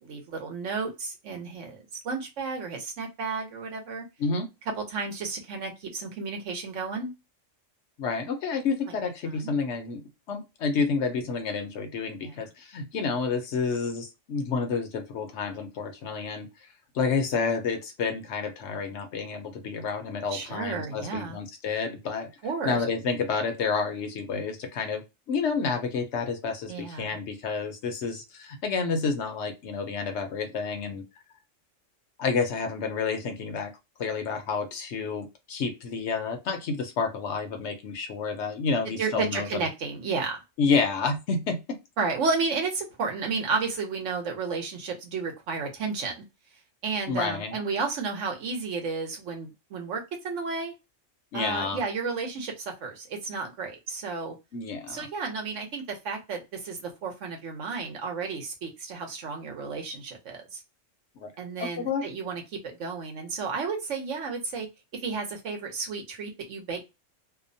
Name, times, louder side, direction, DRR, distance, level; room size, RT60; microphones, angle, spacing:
voice 1, 0.0-4.1 4.8-7.1 9.2-9.5 12.2-12.4 20.3-21.4 22.4-22.8 26.7-27.2 39.0-40.4 42.0-46.2 46.8-50.7 51.3-54.4 54.9-60.6 61.4-64.7 64.9-66.8, right 4 dB, 70° right, 3 dB, 1.1 m, -32 dB
voice 2, 8.0-10.0 10.3-16.7 16.9-22.3 22.6-31.0 32.2-33.7 34.0-39.5 40.6-41.6 47.1-47.5 51.3-51.8 54.5-55.1 61.2-61.3 61.6-62.0, left 5 dB, 65° left, 5 dB, 0.9 m, -29 dB
2.8 x 2.0 x 2.6 m, 0.24 s
omnidirectional pair, 1.3 m